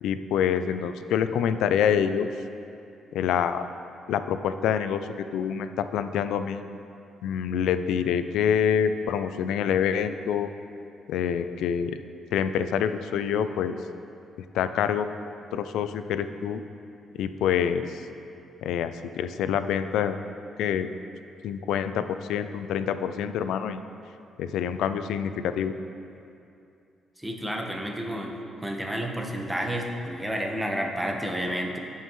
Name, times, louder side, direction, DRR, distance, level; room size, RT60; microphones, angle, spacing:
voice 1, 0.0-2.3 3.1-3.7 4.1-6.6 7.2-10.5 11.1-12.0 12.3-13.8 14.5-15.1 15.5-16.6 17.2-17.9 18.6-20.2 20.6-20.9 21.4-23.8 24.4-25.7, left 8 dB, 85° left, 10 dB, 0.4 m, -26 dB
voice 2, 27.2-28.3 28.6-31.8, equal, 10° right, 1 dB, 1.1 m, -30 dB
16.5 x 5.6 x 3.1 m, 2.6 s
cardioid pair, 90°, 0 cm